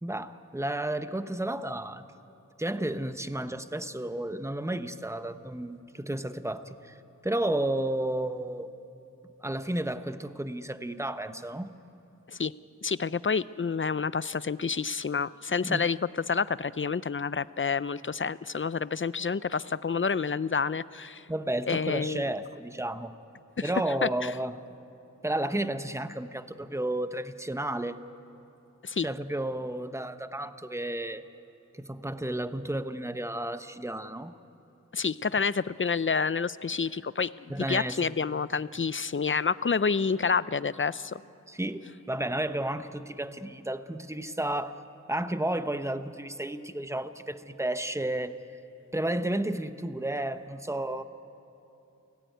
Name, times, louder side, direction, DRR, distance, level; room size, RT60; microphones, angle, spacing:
voice 1, 0.0-2.0 2.6-7.0 7.2-8.7 9.4-11.7 15.6-15.8 21.3-23.1 23.6-24.6 25.2-28.0 29.0-31.2 31.7-34.3 37.5-38.1 41.5-44.8 45.1-48.4 48.9-51.0, right 1 dB, 10° right, 10 dB, 1.0 m, -32 dB
voice 2, 12.8-16.0 16.3-21.2 21.7-22.2 23.6-23.7 24.0-24.3 28.8-29.1 34.9-41.2, left 5 dB, 40° left, 17 dB, 0.5 m, -29 dB
29.0 x 18.0 x 9.3 m, 2.8 s
wide cardioid pair, 50°, 31 cm